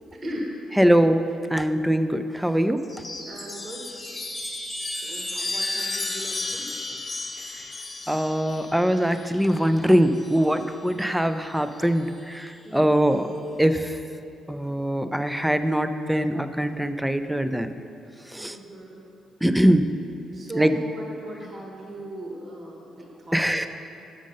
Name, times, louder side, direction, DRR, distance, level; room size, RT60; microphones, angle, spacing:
voice 1, 0.1-0.5 3.2-4.0 4.9-6.7 12.6-13.0 18.3-19.1 20.3-23.6, right 1 dB, 40° right, -1 dB, 1.3 m, -38 dB
voice 2, 0.8-2.8 8.1-13.3 13.6-14.0 14.5-17.7 18.3-18.6 19.4-19.9 20.6-20.8 23.3-23.7, equal, 5° right, 9 dB, 0.4 m, -22 dB
Chime, 2.8-10.6 11.8-12.5, left 2 dB, 25° left, 0.9 m, -34 dB
7.5 x 5.2 x 5.3 m, 2.6 s
cardioid pair, 90°, 0 cm